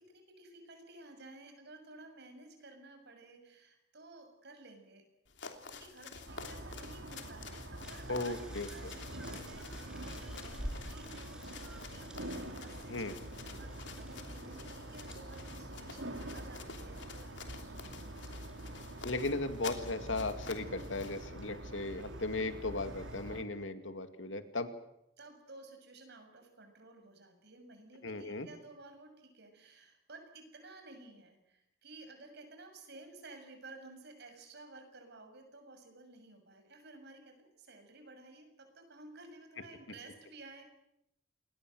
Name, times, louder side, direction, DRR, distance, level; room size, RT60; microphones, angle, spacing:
voice 1, 0.0-5.1 5.6-8.4 8.6-13.2 13.6-18.5 25.2-40.6, right 2 dB, 60° right, 5 dB, 7.0 m, -54 dB
sound 1, 5.3-21.3, left 5 dB, 70° left, 3.2 m, -50 dB
sound 2, 6.3-23.4, right 1 dB, 85° right, 3.0 m, -46 dB
sound 3, 7.8-23.2, equal, 5° right, 5.6 m, -52 dB
voice 2, 8.1-8.9 12.9-13.1 19.0-24.7 28.0-28.5, left 2 dB, 85° left, 9 dB, 2.4 m, -37 dB
28.5 x 20.5 x 7.9 m, 0.81 s
head